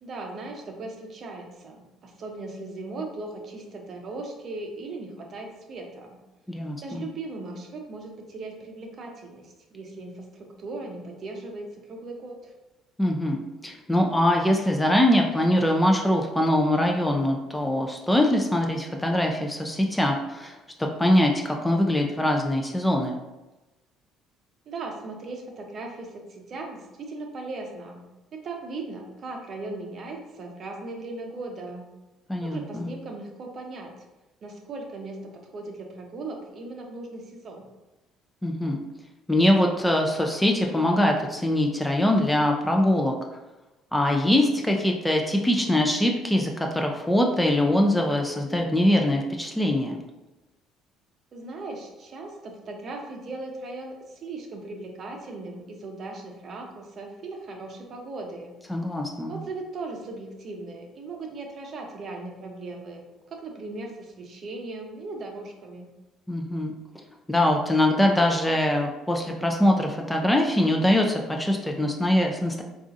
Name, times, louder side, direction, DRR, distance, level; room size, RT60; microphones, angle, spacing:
voice 1, 0.0-6.2 6.8-12.5 24.7-28.0 28.3-31.9 32.4-33.9 34.4-37.7 51.3-58.5 59.3-65.9, right 2 dB, 45° right, 2 dB, 0.6 m, -38 dB
voice 2, 6.5-7.0 13.0-23.2 32.3-32.9 38.4-38.8 39.3-43.1 43.9-50.0 58.7-59.4 66.3-66.7 67.3-72.6, left 1 dB, 5° left, 1 dB, 0.3 m, -23 dB
3.7 x 2.4 x 2.6 m, 1.1 s
cardioid pair, 110°, 0 cm